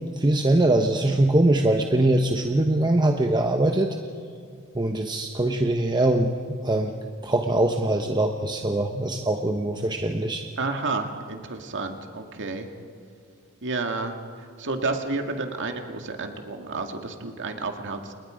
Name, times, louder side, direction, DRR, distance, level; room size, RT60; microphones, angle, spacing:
voice 1, 0.2-4.0 4.7-6.9 7.2-10.4, right 1 dB, 20° right, 4 dB, 1.0 m, -22 dB
voice 2, 10.6-12.7 13.6-14.2 14.6-18.1, right 3 dB, 55° right, 4 dB, 2.2 m, -30 dB
29.5 x 29.0 x 5.2 m, 2.4 s
head